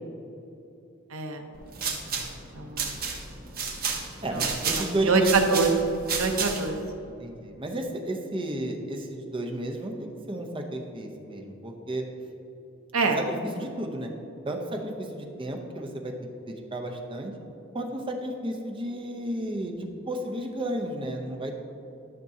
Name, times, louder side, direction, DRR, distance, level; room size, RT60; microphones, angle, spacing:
voice 1, 1.1-1.4 2.5-2.9 4.3-4.4 4.7-5.7 6.1-6.8 12.9-13.2, right 4 dB, 80° right, 4 dB, 0.8 m, -25 dB
sound 1, 1.5-6.8, right 5 dB, 45° right, 1.1 m, -32 dB
voice 2, 4.2-5.4 7.2-12.1 13.2-14.1 14.4-16.1 16.5-17.3 17.7-21.5, right 1 dB, 25° right, 3 dB, 0.8 m, -32 dB
12.0 x 6.1 x 2.8 m, 2.9 s
head